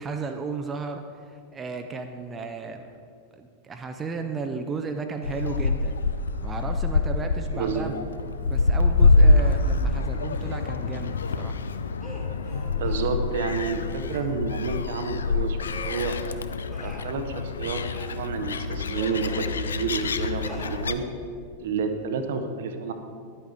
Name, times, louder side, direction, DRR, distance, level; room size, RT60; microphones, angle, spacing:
voice 1, 0.0-2.9 3.3-5.9 6.4-7.9 8.4-11.6, right 4 dB, 20° right, 6 dB, 0.5 m, -34 dB
Gull seagull, 5.2-20.9, left 3 dB, 70° left, 0.4 m, -25 dB
voice 2, 7.5-7.9 12.7-15.6 15.8-16.2 16.8-21.0 21.6-22.9, right 5 dB, 60° right, 7 dB, 0.7 m, -30 dB
sound 1, 10.4-10.7 12.0-13.1 14.1-14.3 15.7-16.2 16.7-17.2 17.8-18.2 18.8-19.4 20.4-20.8, right 1 dB, 5° left, 1.6 m, -43 dB
10.0 x 8.2 x 3.5 m, 2.3 s
figure-of-eight pair, 90°, 0 cm